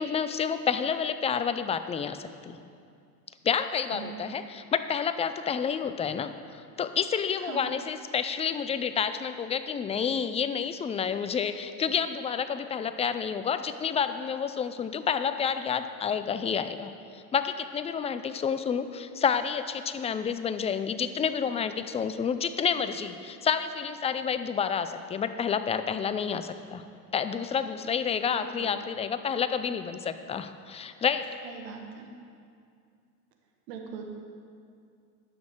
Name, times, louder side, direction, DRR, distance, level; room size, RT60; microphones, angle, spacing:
voice 1, 0.0-2.6 3.4-16.9 17.3-26.8 27.1-31.2, left 7 dB, 15° left, 11 dB, 0.3 m, -29 dB
voice 2, 28.3-28.8 31.4-32.1 33.7-34.0, right 6 dB, 80° right, 2 dB, 1.5 m, -40 dB
10.5 x 6.3 x 6.4 m, 2.3 s
hypercardioid pair, 80°, 47 cm